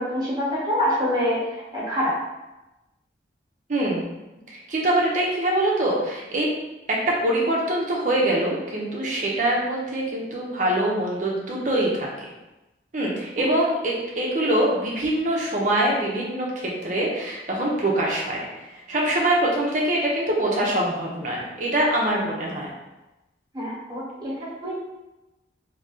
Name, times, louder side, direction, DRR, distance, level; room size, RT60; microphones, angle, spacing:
voice 1, 0.0-1.4 1.7-2.2 23.5-24.9, equal, 25° right, -7 dB, 1.2 m, -25 dB
voice 2, 3.7-4.0 4.5-6.5 6.9-12.1 12.9-18.5 18.9-22.7, right 1 dB, 45° right, -3 dB, 0.7 m, -24 dB
2.8 x 2.7 x 3.6 m, 1.0 s
head